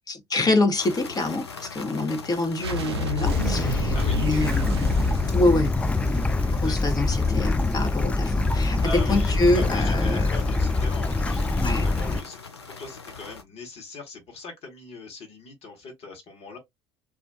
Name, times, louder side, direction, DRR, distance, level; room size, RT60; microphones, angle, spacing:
voice 1, 0.1-5.1 5.3-5.7 6.5-10.2 11.5-11.9, left 2 dB, 30° left, 1.0 m, -26 dB
sound 1, 0.7-13.4, left 5 dB, 90° left, 0.4 m, -42 dB
sound 2, 2.6-6.3, left 1 dB, 80° right, 0.5 m, -31 dB
Bird / Stream, 3.3-12.2, left 3 dB, 10° left, 0.3 m, -24 dB
voice 2, 3.9-4.2 6.6-6.9 8.8-12.4 12.7-16.6, left 4 dB, 50° left, 1.3 m, -40 dB
2.4 x 2.4 x 2.6 m
figure-of-eight pair, 55°, 13 cm